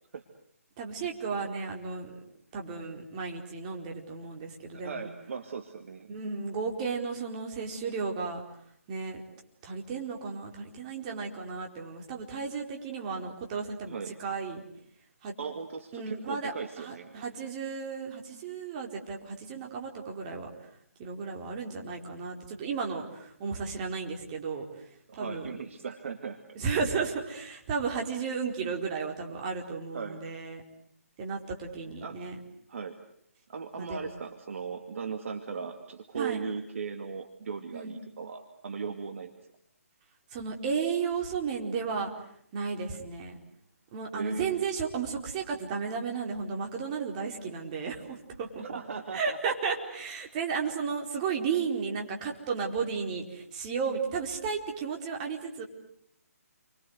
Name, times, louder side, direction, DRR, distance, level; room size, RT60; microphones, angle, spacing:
voice 1, 0.8-2.2 2.5-5.1 6.1-8.4 8.9-9.2 9.6-14.7 15.2-15.3 15.9-20.5 21.0-24.6 25.1-25.5 26.6-30.6 31.2-32.4 33.8-34.1 36.2-36.4 37.7-38.0 40.3-42.1 42.5-43.4 43.9-48.8 49.1-55.7, right 5 dB, 30° right, 1 dB, 4.4 m, -34 dB
voice 2, 4.8-6.1 13.8-14.1 15.4-17.1 25.1-26.4 29.9-30.2 31.8-32.2 32.7-33.0 33.5-39.5 44.1-44.7 48.6-49.5, right 5 dB, 55° right, 6 dB, 2.3 m, -38 dB
29.5 x 25.0 x 8.0 m, 0.68 s
figure-of-eight pair, 155°, 8 cm